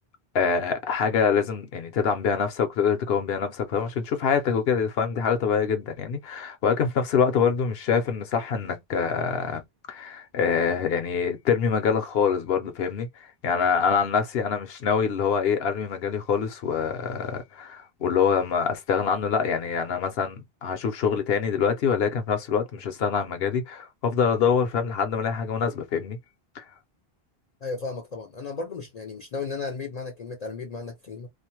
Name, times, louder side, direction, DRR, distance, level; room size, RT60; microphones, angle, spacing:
voice 1, 0.3-9.6 9.9-13.1 13.4-26.2 26.6-26.7, left 6 dB, 75° left, 0.9 m, -25 dB
voice 2, 27.6-31.3, left 4 dB, 50° left, 0.5 m, -34 dB
2.5 x 2.0 x 2.8 m
omnidirectional pair, 1.0 m